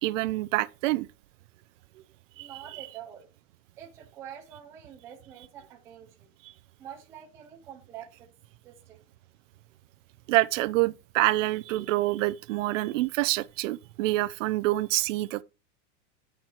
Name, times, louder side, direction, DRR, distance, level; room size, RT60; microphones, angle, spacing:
voice 1, 0.0-1.1 2.4-2.9 10.3-15.4, right 18 dB, 80° right, 0.5 m, -27 dB
voice 2, 2.3-3.3 3.8-6.3 6.8-8.3 8.6-9.0, right 9 dB, 10° right, 0.4 m, -46 dB
7.9 x 4.4 x 4.3 m
supercardioid pair, 180°, 37 cm